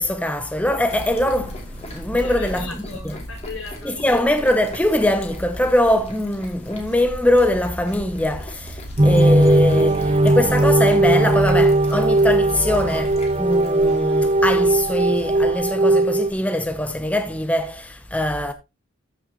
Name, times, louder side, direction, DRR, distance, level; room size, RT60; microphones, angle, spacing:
voice 1, 0.0-2.7 3.0-3.1 3.8-18.5, left 1 dB, 5° left, 0.7 m, -22 dB
sound 1, 0.9-15.7, equal, 30° left, 2.8 m, -37 dB
voice 2, 2.1-4.2, left 4 dB, 75° left, 5.8 m, -37 dB
sound 2, 9.0-16.3, right 2 dB, 30° right, 0.8 m, -18 dB
13.5 x 6.4 x 3.0 m
head